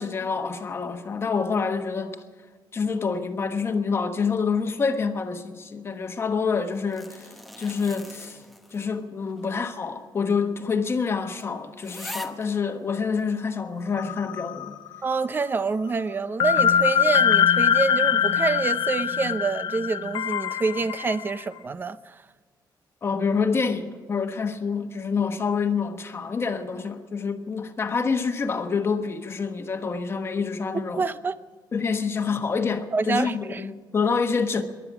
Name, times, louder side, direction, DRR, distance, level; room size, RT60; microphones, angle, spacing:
voice 1, 0.0-2.2 2.7-8.4 8.7-14.8 23.0-31.0 31.7-34.6, left 5 dB, 30° left, 1.2 m, -27 dB
sound 1, 6.6-9.1 9.4-9.5 10.3-10.4 10.8-10.9 11.4-11.5 11.8-12.5 13.2-13.3, left 1 dB, ahead, 0.9 m, -41 dB
sound 2, 14.0-14.9 15.1-15.2 16.4-21.3, left 8 dB, 70° left, 0.6 m, -22 dB
voice 2, 15.0-22.2 30.9-31.3 32.9-33.6, right 4 dB, 25° right, 0.6 m, -27 dB
19.5 x 11.5 x 6.0 m
cardioid pair, 155°, 8 cm